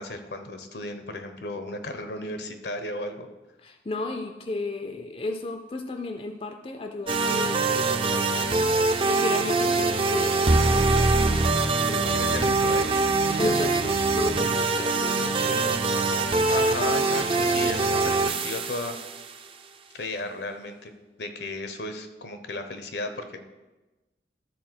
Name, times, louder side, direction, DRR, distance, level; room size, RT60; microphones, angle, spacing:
voice 1, 0.0-3.3 11.4-11.7 12.1-13.5 16.5-19.0 19.9-20.9 21.2-23.4, left 2 dB, 75° left, 7 dB, 0.9 m, -34 dB
voice 2, 3.6-8.7 9.0-10.4 10.7-11.2 11.8-12.3 13.4-15.8, left 2 dB, 30° left, 6 dB, 0.5 m, -34 dB
sound 1, 7.1-19.3, right 3 dB, 30° right, 0.5 m, -23 dB
12.5 x 4.4 x 6.1 m, 1.1 s
head